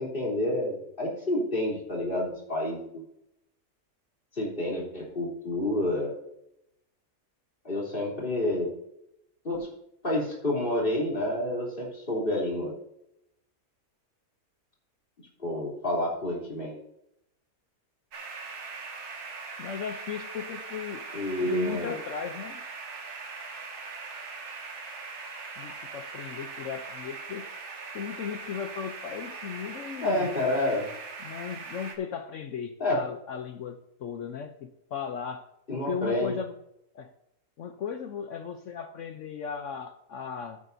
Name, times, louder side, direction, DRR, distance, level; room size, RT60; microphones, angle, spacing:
voice 1, 0.0-3.0 4.3-6.2 7.6-8.7 9.4-9.7 10.0-12.7 15.4-16.8 21.1-21.9 30.0-30.9 32.8-33.0 35.7-36.4, left 1 dB, 35° left, -3 dB, 3.5 m, -29 dB
sound 1, 18.1-32.0, right 4 dB, 85° right, 1.9 m, -41 dB
voice 2, 19.6-21.0 21.4-22.6 25.6-27.5 27.9-30.3 31.2-35.5 35.7-36.5 36.9-37.1 37.6-40.6, left 7 dB, 60° left, 8 dB, 0.9 m, -36 dB
14.0 x 8.6 x 2.7 m, 0.79 s
omnidirectional pair, 1.6 m